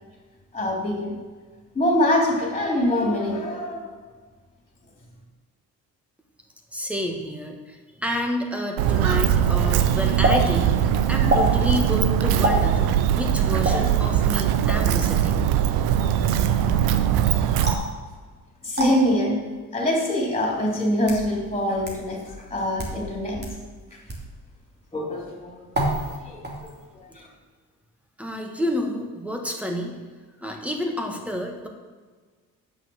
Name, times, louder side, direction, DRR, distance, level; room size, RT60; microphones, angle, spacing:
voice 1, 0.5-1.1 1.7-3.8 18.6-19.4 19.7-23.4 24.9-25.7 26.2-26.4 26.6-26.7 27.0-27.3, left 1 dB, 15° left, -2 dB, 3.4 m, -24 dB
voice 2, 6.7-10.8 11.1-12.8 13.1-15.4 28.2-30.0 30.4-31.7, left 1 dB, 5° right, 2 dB, 1.8 m, -29 dB
Walk footsteps, 8.8-17.7, right 10 dB, 85° right, 0.8 m, -21 dB
sound 1, 10.2-10.4 11.3-11.5 12.4-12.6 13.6-13.8 14.7-14.9 17.6-17.9 18.7-18.9 19.9-20.0 20.8-21.2 21.8-21.9 22.7-23.0 23.4-23.5 24.1-24.3 25.7-26.2 26.4-26.8, right 1 dB, 30° right, 2.8 m, -25 dB
8.9 x 6.2 x 6.6 m, 1.4 s
cardioid pair, 90°, 36 cm